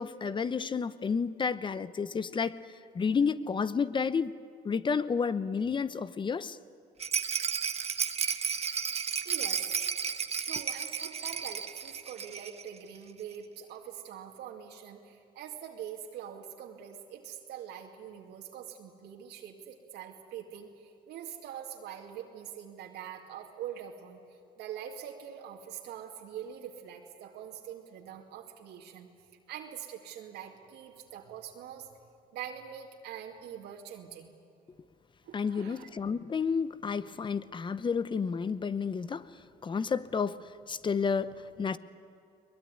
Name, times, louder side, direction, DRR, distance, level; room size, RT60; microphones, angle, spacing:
voice 1, 0.0-2.6 2.9-4.3 4.6-6.6 35.3-39.3 39.6-41.8, left 5 dB, 30° left, 15 dB, 0.8 m, -31 dB
Rattle, 7.0-12.7 13.0-13.1 13.3-13.4, right 6 dB, 40° right, 1.2 m, -33 dB
voice 2, 8.9-9.7 10.5-24.2 24.6-29.1 29.5-31.9 32.3-34.3 35.2-35.9, right 9 dB, 80° right, 1 dB, 2.5 m, -44 dB
22.0 x 21.0 x 9.8 m, 2.6 s
cardioid pair, 110°, 17 cm